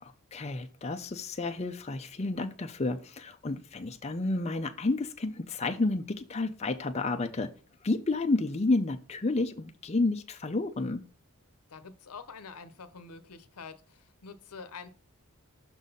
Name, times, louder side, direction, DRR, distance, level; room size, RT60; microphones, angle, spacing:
voice 1, 0.0-7.5 7.8-11.0, left 2 dB, 30° left, 0.5 m, -31 dB
voice 2, 11.7-14.9, left 5 dB, 85° left, 0.8 m, -46 dB
6.2 x 4.0 x 5.3 m
head